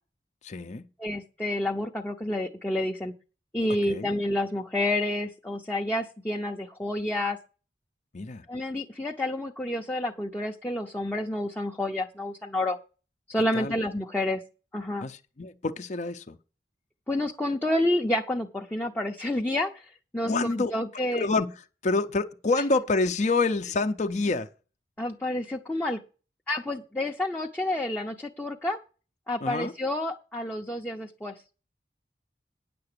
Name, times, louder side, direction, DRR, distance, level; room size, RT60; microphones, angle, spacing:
voice 1, 0.4-0.9 3.9-4.1 8.1-8.4 13.5-13.7 15.0-16.4 20.3-20.7 21.1-24.5 29.4-29.7, left 3 dB, 45° left, 0.6 m, -27 dB
voice 2, 1.0-3.1 3.5-7.4 8.5-12.8 13.3-14.4 14.7-15.1 17.1-21.3 25.0-26.0 26.5-28.8 29.3-31.3, left 1 dB, 10° left, 0.7 m, -29 dB
9.7 x 6.9 x 6.7 m
head